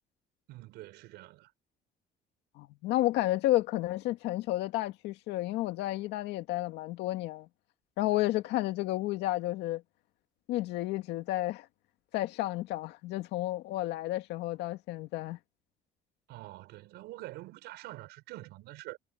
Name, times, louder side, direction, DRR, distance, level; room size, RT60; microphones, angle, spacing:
voice 1, 0.5-1.5 16.3-19.0, right 18 dB, 90° right, 5.8 m, -46 dB
voice 2, 2.6-7.5 8.0-9.8 10.5-11.7 12.1-15.4, left 16 dB, 85° left, 2.0 m, -31 dB
cardioid pair, 110°, 17 cm